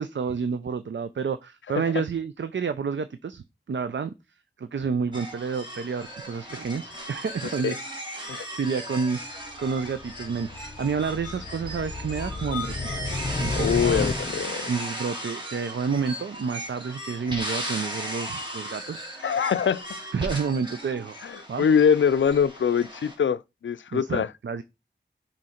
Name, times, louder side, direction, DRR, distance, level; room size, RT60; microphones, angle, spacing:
voice 1, 0.0-4.1 4.6-7.8 8.1-13.0 13.4-13.8 14.6-19.1 20.1-21.2 21.5-21.6 23.9-24.6, right 5 dB, 75° right, 0.5 m, -30 dB
sound 1, 5.1-23.2, equal, 25° right, 2.0 m, -36 dB
sound 2, 9.4-14.7, left 3 dB, 30° left, 0.8 m, -32 dB
voice 2, 13.5-14.7 19.2-19.8 21.6-24.3, left 7 dB, 80° left, 0.4 m, -23 dB
6.3 x 4.3 x 4.3 m
wide cardioid pair, 45°, 19 cm